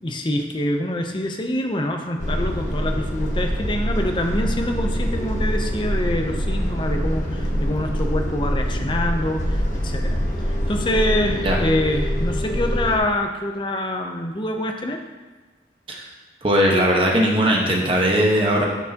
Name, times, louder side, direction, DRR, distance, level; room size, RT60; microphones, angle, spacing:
voice 1, 0.0-15.0, left 1 dB, 25° left, 4 dB, 0.6 m, -25 dB
sound 1, 2.2-13.0, equal, 45° left, 1.1 m, -24 dB
voice 2, 16.4-18.7, equal, 30° right, -2 dB, 1.2 m, -19 dB
9.9 x 6.5 x 2.9 m, 1.3 s
head